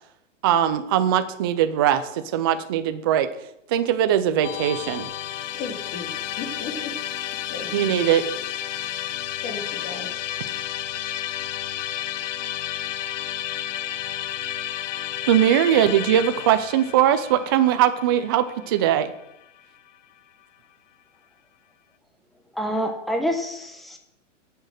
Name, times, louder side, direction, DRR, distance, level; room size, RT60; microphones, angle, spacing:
voice 1, 0.4-3.3 3.7-5.1 7.7-8.3 15.3-19.1, right 10 dB, 20° right, 10 dB, 0.3 m, -20 dB
Musical instrument, 4.4-19.6, left 11 dB, 75° left, 0.7 m, -32 dB
voice 2, 5.5-7.0 7.3-7.9 9.4-10.6, left 4 dB, 30° left, 2 dB, 3.0 m, -36 dB
voice 3, 22.6-24.0, equal, ahead, 4 dB, 1.0 m, -27 dB
12.0 x 6.6 x 6.3 m, 0.85 s
hypercardioid pair, 140°, 38 cm